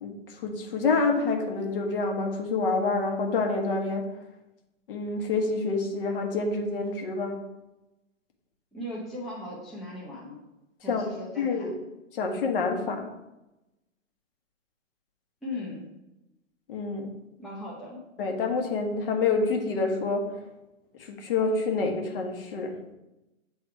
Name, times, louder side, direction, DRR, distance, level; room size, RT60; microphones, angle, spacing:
voice 1, 0.0-4.1 4.9-7.4 10.9-11.1 11.4-11.7 12.1-13.1 16.7-17.1 18.2-20.2 21.0-22.7, left 3 dB, 45° left, 3 dB, 1.2 m, -27 dB
voice 2, 8.7-10.4 10.8-11.7 15.4-15.9 17.4-18.0, left 1 dB, ahead, -8 dB, 0.7 m, -38 dB
8.1 x 3.5 x 4.5 m, 0.97 s
hypercardioid pair, 140°, 40 cm